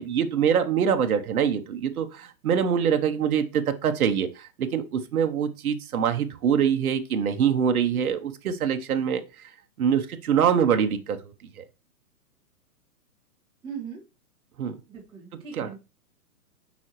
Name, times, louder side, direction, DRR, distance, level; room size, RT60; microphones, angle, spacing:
voice 1, 0.0-9.2 9.8-11.2 11.6-11.7 14.6-14.8 15.6-15.7, right 8 dB, 65° right, 7 dB, 1.0 m, -24 dB
voice 2, 13.6-14.0 14.9-15.8, right 7 dB, 10° right, -5 dB, 1.8 m, -39 dB
7.3 x 4.9 x 3.0 m, 0.29 s
hypercardioid pair, 155°, 47 cm